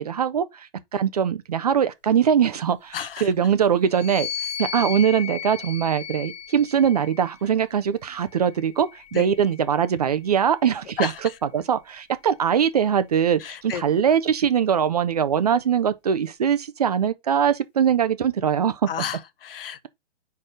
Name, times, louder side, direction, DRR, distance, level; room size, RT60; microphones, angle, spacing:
voice 1, 0.0-18.9, right 8 dB, 35° right, 0.5 m, -22 dB
voice 2, 2.9-3.3 9.1-9.3 11.0-11.2 13.4-13.8 18.9-19.9, left 9 dB, 55° left, 0.8 m, -31 dB
sound 1, 3.8-7.4 8.3-9.9, left 8 dB, 25° left, 0.9 m, -35 dB
4.8 x 4.5 x 5.0 m
hypercardioid pair, 165°, 34 cm